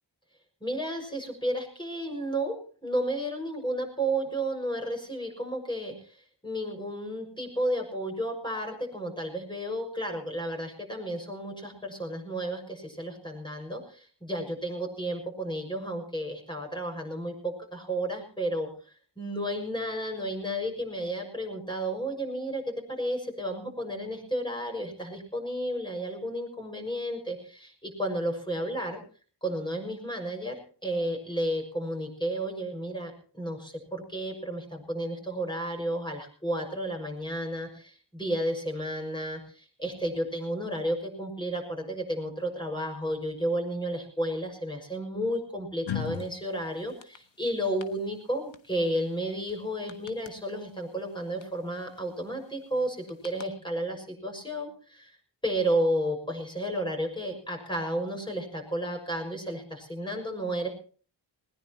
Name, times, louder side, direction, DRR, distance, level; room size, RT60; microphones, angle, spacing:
voice 1, 0.6-29.0 29.4-30.6 30.8-55.1 55.4-60.7, right 1 dB, 10° left, 2 dB, 6.4 m, -32 dB
sound 1, 45.9-46.3 46.9-47.2 47.8-47.9 48.5-48.6 48.9-49.0 49.5-49.6 49.9-50.3 51.4-51.5 51.8-52.0 53.1-53.5, left 8 dB, 85° left, 1.5 m, -35 dB
20.0 x 19.5 x 3.1 m, 0.41 s
wide cardioid pair, 95°, 44 cm